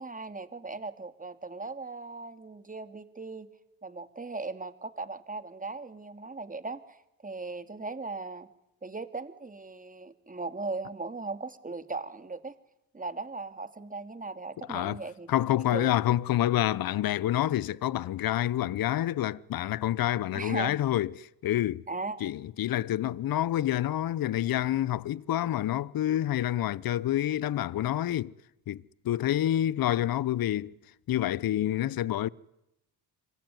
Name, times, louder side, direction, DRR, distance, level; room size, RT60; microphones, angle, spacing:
voice 1, 0.0-3.5 3.8-8.5 8.8-12.5 12.9-15.3 15.7-15.9 20.3-20.8 21.9-22.3, right 3 dB, 15° right, 2.8 m, -38 dB
voice 2, 14.7-15.0 15.3-21.9 22.2-28.3 28.7-30.7 31.1-32.3, left 13 dB, 50° left, 1.0 m, -28 dB
26.0 x 23.5 x 9.7 m
hypercardioid pair, 60°, 46 cm